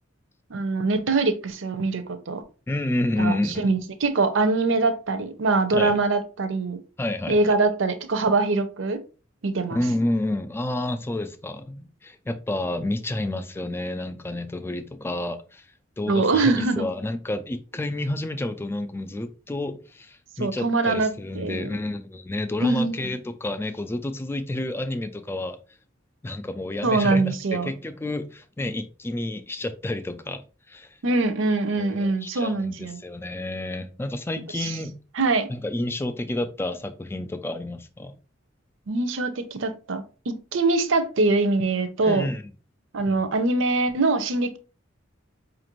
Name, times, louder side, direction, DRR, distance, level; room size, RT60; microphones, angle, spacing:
voice 1, 0.5-2.4 3.2-6.8 7.3-9.0 9.4-9.8 16.1-16.9 20.4-21.7 22.6-23.0 26.8-27.7 31.0-33.0 34.6-34.8 35.2-35.5 38.9-42.3 42.9-44.6, right 3 dB, 75° right, 0.6 m, -23 dB
voice 2, 2.7-3.7 5.7-6.0 7.0-7.4 9.7-15.7 16.0-25.6 26.2-30.4 30.7-31.0 31.8-35.0 35.5-38.1 42.0-42.4, left 1 dB, 10° left, 0.3 m, -30 dB
5.0 x 2.5 x 2.9 m
head